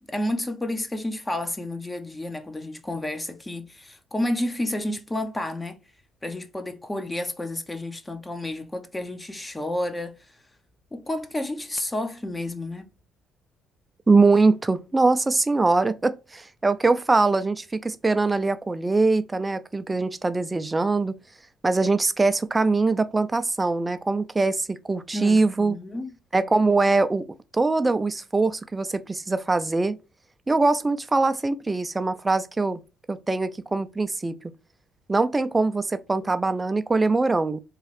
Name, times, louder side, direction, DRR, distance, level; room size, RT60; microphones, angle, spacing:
voice 1, 0.1-5.8 6.2-10.4 10.9-12.9 25.1-26.1, left 1 dB, 20° left, 0.7 m, -30 dB
voice 2, 14.1-21.1 21.6-25.8 26.3-27.2 27.5-29.9 30.5-32.8 33.1-34.3 35.1-37.6, right 3 dB, 25° right, 0.4 m, -22 dB
3.6 x 2.3 x 3.3 m
hypercardioid pair, 55°, 0 cm